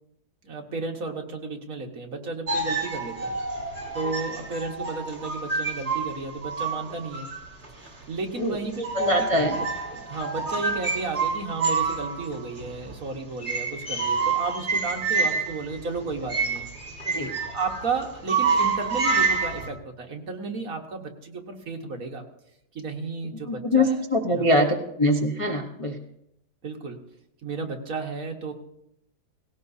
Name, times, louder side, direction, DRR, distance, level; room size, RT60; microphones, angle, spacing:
voice 1, 0.4-3.4 3.9-7.3 8.1-9.2 9.4-16.7 17.4-22.2 22.7-24.0 24.3-24.4 25.6-25.7 26.6-27.0 27.4-28.5, right 3 dB, 50° right, 2 dB, 1.7 m, -33 dB
sound 1, 2.5-8.0 8.4-8.5 8.7-19.7, right 4 dB, 30° right, 3.0 m, -28 dB
voice 2, 8.9-9.6 17.1-17.3 23.5-26.0, left 1 dB, 30° left, 0 dB, 0.6 m, -23 dB
18.5 x 17.0 x 2.7 m, 0.81 s
omnidirectional pair, 2.1 m